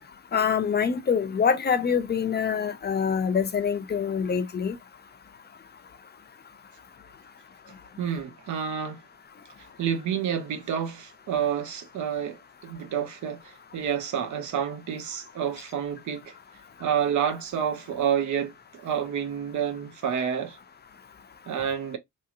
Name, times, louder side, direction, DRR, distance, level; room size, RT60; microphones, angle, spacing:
voice 1, 0.3-4.8, left 6 dB, 35° left, 0.5 m, -25 dB
voice 2, 8.0-9.0 9.8-16.3 16.8-20.6 21.5-22.0, right 8 dB, 70° right, 0.8 m, -29 dB
3.1 x 2.7 x 2.4 m
cardioid pair, 105°, 31 cm